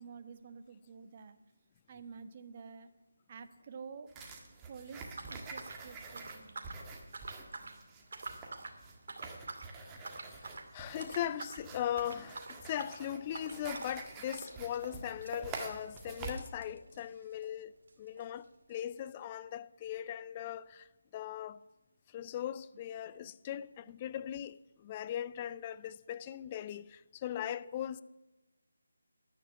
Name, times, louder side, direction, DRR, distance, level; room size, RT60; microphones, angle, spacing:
voice 1, 0.0-1.4 1.9-2.9 3.3-4.1 4.7-6.5 23.2-23.3, right 5 dB, 35° right, 1.2 m, -49 dB
sound 1, 4.1-16.4, right 4 dB, 15° right, 1.7 m, -47 dB
sound 2, 5.2-6.8 7.1-7.8 8.1-8.8 9.1-9.7 10.0-10.7 11.0-11.6 11.9-17.6 17.9-18.0 18.2-18.3 18.9-19.0, right 3 dB, 55° right, 2.3 m, -46 dB
voice 2, 10.1-21.6 22.1-28.0, left 11 dB, 20° left, 0.5 m, -39 dB
13.5 x 10.5 x 9.5 m
figure-of-eight pair, 160°, 0 cm